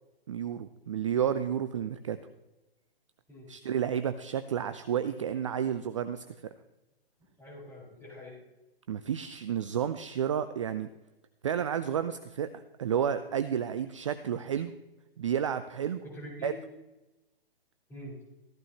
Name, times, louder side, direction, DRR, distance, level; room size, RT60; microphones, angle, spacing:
voice 1, 0.3-2.2 3.5-6.2 8.9-10.9 11.4-12.5 12.8-14.7 15.2-16.0 16.4-16.5, right 8 dB, 30° right, 11 dB, 0.5 m, -31 dB
voice 2, 7.4-8.4 16.0-16.6 17.9-18.2, equal, 10° left, -5 dB, 5.0 m, -44 dB
15.0 x 14.5 x 3.0 m, 1.0 s
figure-of-eight pair, 130°, 30 cm